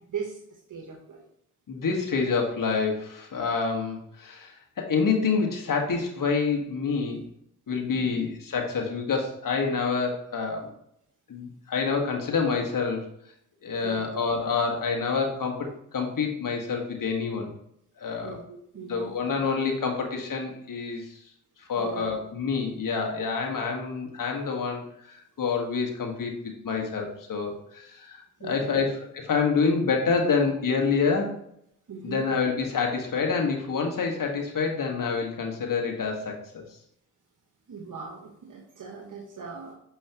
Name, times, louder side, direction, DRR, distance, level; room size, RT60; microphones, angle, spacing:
voice 1, 0.1-1.2 7.9-8.0 13.8-14.3 18.2-19.1 21.8-22.1 28.4-28.6 31.9-32.3 37.7-39.7, right 6 dB, 60° right, 1 dB, 1.2 m, -39 dB
voice 2, 1.7-7.2 7.7-10.7 11.3-13.1 13.6-17.5 18.0-18.4 18.8-21.2 21.6-26.3 26.6-31.4 32.0-36.6, left 5 dB, 65° left, 2 dB, 1.6 m, -27 dB
7.0 x 5.4 x 3.0 m, 0.73 s
cardioid pair, 50°, 36 cm